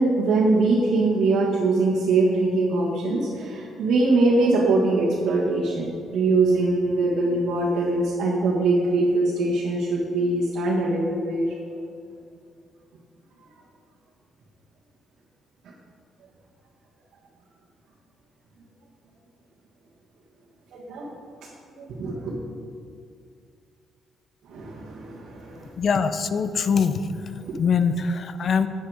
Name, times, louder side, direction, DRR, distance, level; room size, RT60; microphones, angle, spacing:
voice 1, 0.0-11.5 20.7-21.1 21.8-22.4 24.5-25.7 27.5-27.6, right 2 dB, 75° right, -6 dB, 1.6 m, -22 dB
voice 2, 25.8-27.0 27.6-28.7, left 6 dB, 55° left, 11 dB, 0.6 m, -22 dB
9.0 x 8.4 x 4.9 m, 2.4 s
cardioid pair, 90°, 0 cm